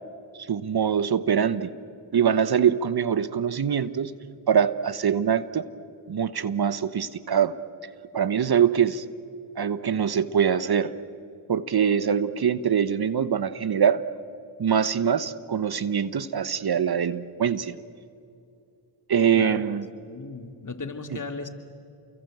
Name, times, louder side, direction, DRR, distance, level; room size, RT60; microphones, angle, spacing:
voice 1, 0.4-1.7 2.1-4.1 4.5-5.6 6.1-7.5 8.1-9.0 9.6-10.9 11.5-14.0 14.6-17.8 19.1-19.9, right 8 dB, 50° right, 14 dB, 1.1 m, -23 dB
voice 2, 20.0-21.5, left 4 dB, 40° left, 6 dB, 3.0 m, -36 dB
29.5 x 23.0 x 8.1 m, 2.6 s
supercardioid pair, 50°, 49 cm